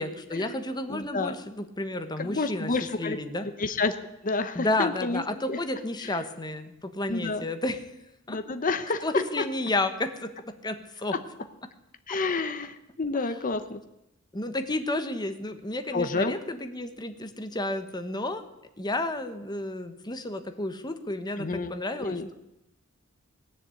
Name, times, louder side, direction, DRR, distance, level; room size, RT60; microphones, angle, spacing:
voice 1, 0.0-3.5 4.5-7.8 8.3-8.4 9.0-11.2 12.1-12.2 13.1-13.4 14.3-18.4 18.8-22.3, left 2 dB, 20° left, 8 dB, 1.2 m, -31 dB
voice 2, 0.9-1.3 2.2-3.2 3.6-3.9 4.2-5.6 7.1-7.4 8.3-9.0 12.1-13.8 15.9-16.4 21.4-22.3, left 3 dB, 40° left, 9 dB, 0.9 m, -29 dB
18.5 x 7.1 x 8.5 m, 0.91 s
head